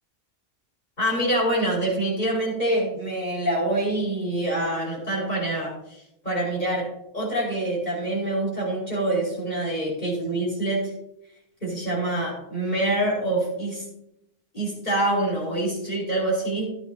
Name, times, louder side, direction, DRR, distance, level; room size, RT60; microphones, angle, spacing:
voice 1, 1.0-6.0 6.2-6.9 7.1-10.9 11.6-13.8 14.5-16.7, right 1 dB, 45° left, -4 dB, 5.6 m, -25 dB
15.0 x 10.5 x 2.9 m, 0.82 s
omnidirectional pair, 1.1 m